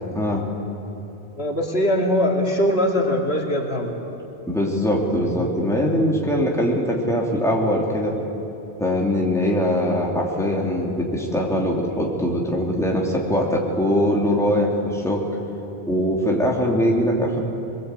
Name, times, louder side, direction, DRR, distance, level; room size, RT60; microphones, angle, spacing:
voice 1, 0.1-0.4 4.5-8.2 8.8-15.3 15.9-17.4, equal, 5° left, -2 dB, 3.0 m, -22 dB
voice 2, 1.4-4.1 5.2-5.4, equal, 75° left, 0 dB, 2.9 m, -22 dB
24.0 x 21.5 x 8.4 m, 2.9 s
omnidirectional pair, 1.0 m